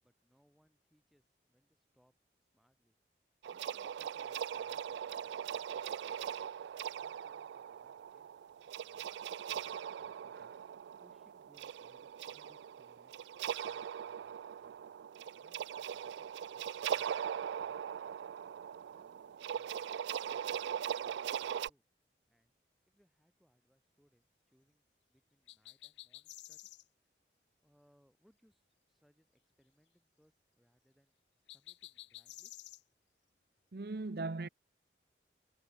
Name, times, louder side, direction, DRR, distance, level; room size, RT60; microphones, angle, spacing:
voice 1, 0.0-2.1 2.4-3.0 3.5-6.5 6.9-8.3 8.8-10.5 11.0-14.9 15.4-18.1 18.9-19.8 20.2-21.8 22.3-22.5 22.9-26.7 27.0-27.2 27.6-31.1 31.5-32.5, equal, ahead, 7.9 m, -73 dB
sound 1, 3.4-21.7, right 8 dB, 85° right, 0.3 m, -40 dB
sound 2, 25.5-26.8 31.5-32.8, left 16 dB, 90° left, 0.7 m, -51 dB
voice 2, 33.7-34.5, right 3 dB, 60° right, 0.7 m, -39 dB
head